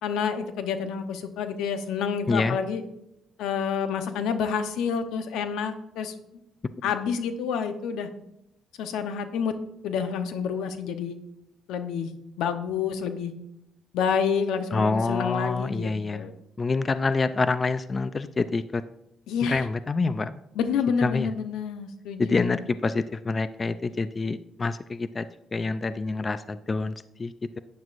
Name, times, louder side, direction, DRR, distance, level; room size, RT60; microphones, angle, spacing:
voice 1, 0.0-2.8 3.4-6.1 6.8-8.1 8.8-9.5 9.8-11.2 11.7-12.1 12.4-13.3 13.9-16.3 19.3-19.6 20.5-22.6, left 6 dB, 90° left, 8 dB, 0.9 m, -28 dB
voice 2, 14.7-16.2 16.6-18.8 19.4-20.4 21.0-21.3 22.2-25.3 25.5-27.6, left 3 dB, 30° left, 13 dB, 0.4 m, -27 dB
12.0 x 9.3 x 2.6 m, 0.84 s
cardioid pair, 90°, 0 cm